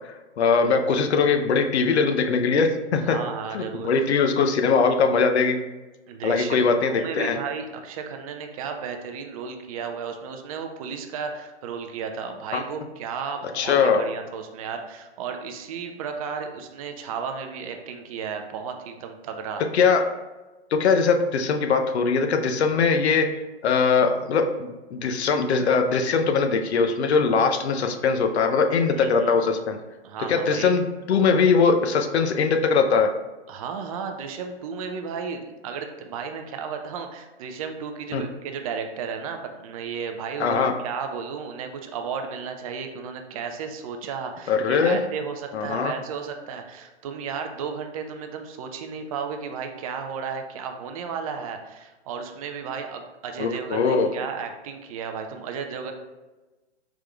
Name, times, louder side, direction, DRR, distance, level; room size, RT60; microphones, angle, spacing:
voice 1, 0.4-3.2 3.5-5.6 6.2-7.4 13.5-14.0 19.7-20.0 20.7-23.3 23.6-29.8 30.3-33.1 38.1-38.2 40.4-40.7 44.5-45.0 45.5-45.9 53.4-54.1, left 5 dB, 75° left, 6 dB, 0.6 m, -21 dB
voice 2, 2.9-3.9 6.1-19.6 29.0-29.4 30.0-30.7 33.5-55.9, right 6 dB, 35° right, 5 dB, 0.4 m, -34 dB
4.9 x 3.5 x 2.2 m, 1.1 s
hypercardioid pair, 125°, 34 cm